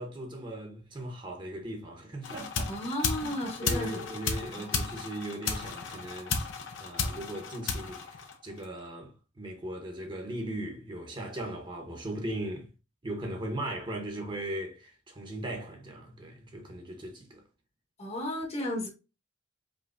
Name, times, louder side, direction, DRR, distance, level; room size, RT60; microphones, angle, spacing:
voice 1, 0.0-2.7 3.2-3.3 3.6-6.4 6.8-12.7 13.0-17.4, right 1 dB, 25° right, 1.0 m, -38 dB
sound 1, 2.2-8.8, left 5 dB, 75° left, 0.7 m, -34 dB
voice 2, 2.7-4.0 4.5-4.7 18.0-18.9, left 1 dB, 35° left, 1.1 m, -34 dB
5.1 x 2.8 x 2.5 m
head